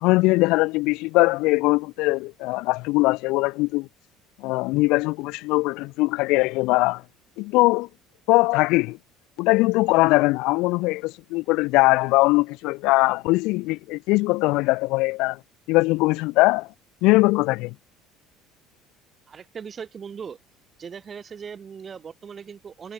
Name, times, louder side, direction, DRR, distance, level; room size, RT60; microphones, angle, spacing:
voice 1, 0.0-3.9 4.4-7.0 7.4-7.9 8.3-9.0 9.4-15.4 15.7-16.7 17.0-17.7, left 23 dB, 75° left, 2.7 m, -21 dB
voice 2, 19.3-20.4 20.8-22.9, right 6 dB, 25° right, 5.2 m, -39 dB
cardioid pair, 140°, 0 cm